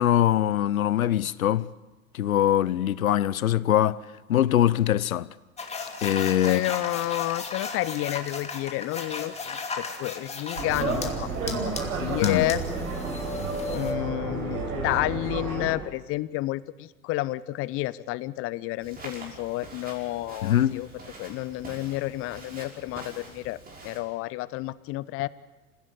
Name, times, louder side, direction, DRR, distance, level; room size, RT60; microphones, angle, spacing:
voice 1, 0.0-1.7 2.1-4.0 4.3-5.3 6.0-6.6 12.2-12.5 20.4-20.8, left 11 dB, 70° left, 0.8 m, -22 dB
sound 1, 5.6-11.1 11.5-13.9, left 4 dB, 15° left, 2.6 m, -35 dB
voice 2, 6.4-11.7 12.0-12.6 13.7-20.9 21.2-23.6 23.8-25.3, left 18 dB, 30° left, 0.7 m, -30 dB
sound 2, 10.6-15.7, right 4 dB, 65° right, 6.8 m, -31 dB
Walk footsteps, 18.8-24.0, right 2 dB, 20° right, 5.9 m, -45 dB
28.0 x 16.0 x 8.4 m
figure-of-eight pair, 90°, 43 cm